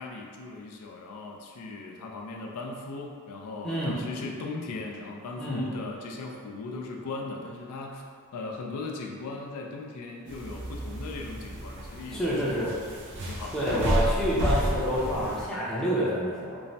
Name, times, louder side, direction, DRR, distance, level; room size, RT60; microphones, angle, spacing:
voice 1, 0.0-8.0 8.3-12.6 13.3-14.0, left 3 dB, 75° left, 0 dB, 0.3 m, -38 dB
voice 2, 3.6-3.9 5.4-5.8 12.1-12.7 13.5-16.6, equal, 5° left, -8 dB, 0.5 m, -28 dB
sound 1, 10.3-15.5, equal, 55° right, 0.5 m, -31 dB
3.0 x 2.0 x 2.6 m, 2.1 s
head